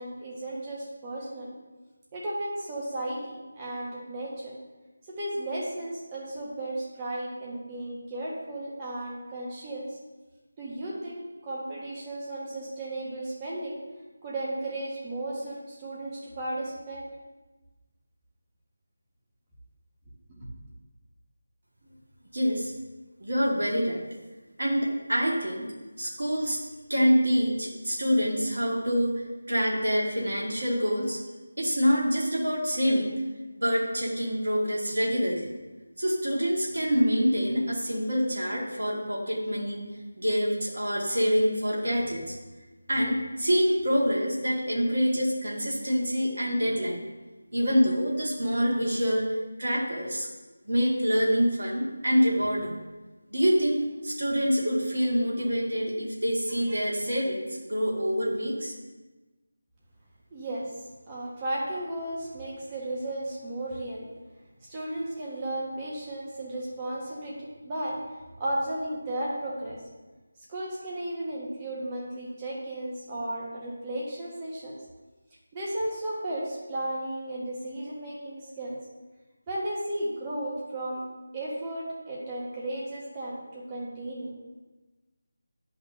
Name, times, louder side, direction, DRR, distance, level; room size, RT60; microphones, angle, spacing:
voice 1, 0.0-1.5 2.1-4.6 5.1-10.0 10.6-13.8 14.2-17.1 20.4-20.5 60.3-60.7 61.1-64.1 64.6-68.0 68.4-69.8 70.5-74.8 75.5-78.8 79.5-81.0 81.3-84.3, right 1 dB, 20° right, -5 dB, 1.4 m, -34 dB
voice 2, 22.3-22.7 23.2-24.0 24.6-25.7 26.0-26.6 26.9-29.1 29.5-31.2 31.6-33.1 33.6-35.5 36.0-39.8 40.1-42.3 42.9-47.0 47.5-49.3 49.6-50.3 50.6-52.8 53.3-58.7, equal, 60° right, -3 dB, 1.8 m, -26 dB
10.0 x 5.3 x 2.7 m, 1.2 s
figure-of-eight pair, 160°, 0 cm